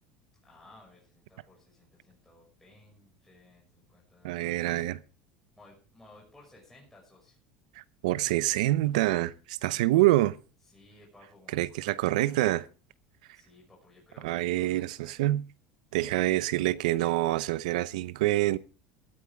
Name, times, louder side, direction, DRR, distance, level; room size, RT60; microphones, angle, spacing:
voice 1, 0.4-4.9 5.6-7.4 9.5-10.1 10.6-11.8 12.1-12.4 13.3-15.1, left 2 dB, 5° left, 6.0 m, -57 dB
voice 2, 4.2-5.0 7.8-10.3 11.5-12.7 14.2-15.4 15.9-18.6, right 16 dB, 85° right, 0.7 m, -26 dB
15.5 x 13.5 x 3.5 m
supercardioid pair, 110°, 4 cm